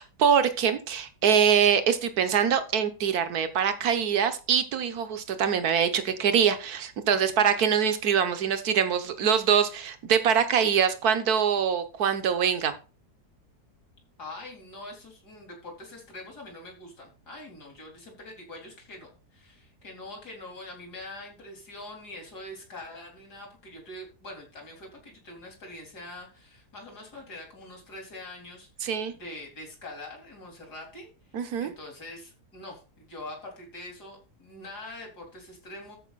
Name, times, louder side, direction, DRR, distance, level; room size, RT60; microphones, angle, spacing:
voice 1, 0.0-12.7 28.8-29.1 31.3-31.7, right 7 dB, 70° right, 10 dB, 1.6 m, -24 dB
voice 2, 14.2-36.0, left 1 dB, 80° left, 0 dB, 4.3 m, -44 dB
13.0 x 5.4 x 4.1 m, 0.33 s
omnidirectional pair, 1.7 m